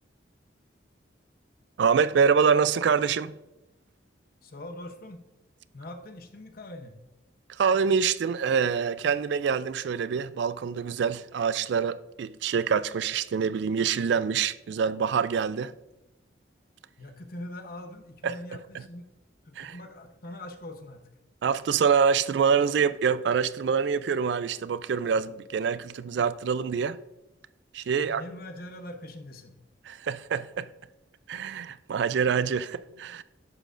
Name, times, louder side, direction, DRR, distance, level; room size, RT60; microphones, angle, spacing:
voice 1, 1.8-3.4 7.6-15.7 18.2-18.3 19.6-19.7 21.4-27.0 27.7-28.2 29.9-30.7 31.3-33.2, right 6 dB, 65° right, 0.3 m, -25 dB
voice 2, 4.4-5.2 5.7-7.0 17.0-19.1 19.4-21.0 27.9-29.6, left 1 dB, 50° left, 0.9 m, -42 dB
11.0 x 7.6 x 2.5 m
head